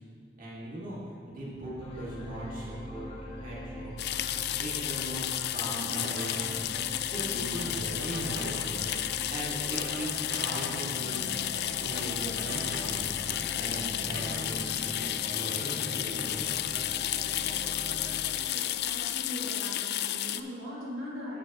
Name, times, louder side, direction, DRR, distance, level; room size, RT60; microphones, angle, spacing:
voice 1, 0.4-3.0 3.4-11.2 11.8-15.0 15.3-16.5, right 1 dB, 45° right, -6 dB, 2.0 m, -39 dB
sound 1, 1.8-19.3, left 1 dB, 30° left, 1.5 m, -43 dB
sound 2, 4.0-20.4, left 12 dB, 55° left, 0.3 m, -32 dB
sound 3, 5.9-6.5 6.7-6.8 7.2-8.7 8.9-9.0 9.3-10.8 11.1-11.2 11.5-13.4 13.7-14.5, right 3 dB, 65° right, 0.7 m, -43 dB
voice 2, 18.5-21.4, left 1 dB, 80° right, -5 dB, 2.0 m, -40 dB
13.0 x 7.3 x 3.0 m, 2.2 s
head